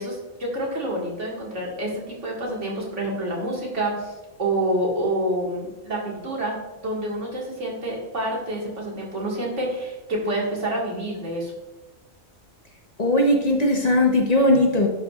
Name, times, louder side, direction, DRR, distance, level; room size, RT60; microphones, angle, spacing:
voice 1, 0.0-4.1 4.4-11.5, right 1 dB, 80° right, -3 dB, 2.1 m, -28 dB
voice 2, 13.0-14.9, left 1 dB, 35° left, 1 dB, 1.0 m, -19 dB
12.0 x 4.7 x 2.4 m, 1.1 s
omnidirectional pair, 1.2 m